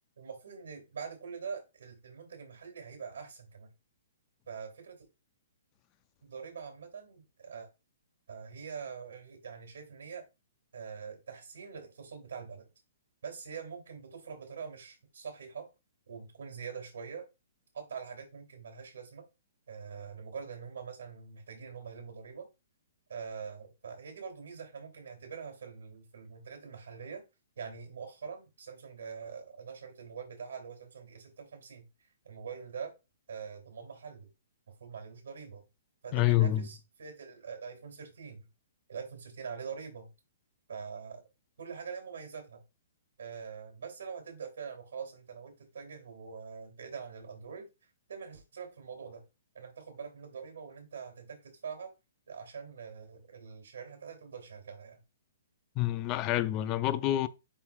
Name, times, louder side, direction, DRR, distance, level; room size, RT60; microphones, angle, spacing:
voice 1, 0.2-3.7 4.5-5.0 6.2-7.7 8.3-10.2 10.7-12.7 13.2-15.7 16.1-17.3 17.7-19.2 19.7-22.5 23.1-27.2 27.6-31.9 32.2-32.9 33.3-34.3 34.8-35.6 36.0-38.5 38.9-40.1 40.7-41.3 41.6-42.6 43.2-47.7 48.1-49.2 49.5-51.9 52.3-55.0, right 6 dB, 75° right, 2.7 m, -44 dB
voice 2, 36.1-36.7 55.8-57.3, left 14 dB, 20° left, 0.3 m, -27 dB
10.5 x 3.8 x 2.4 m
hypercardioid pair, 175°, 0 cm